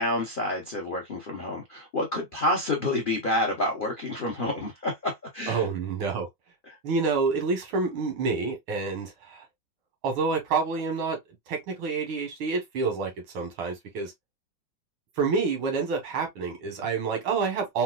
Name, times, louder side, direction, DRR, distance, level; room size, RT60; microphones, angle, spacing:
voice 1, 0.0-5.7, left 1 dB, 85° left, 0.4 m, -28 dB
voice 2, 5.5-6.3 6.8-9.4 10.0-11.2 11.5-14.1 15.2-17.8, right 4 dB, 90° right, 2.0 m, -28 dB
3.9 x 2.3 x 2.3 m
omnidirectional pair, 2.2 m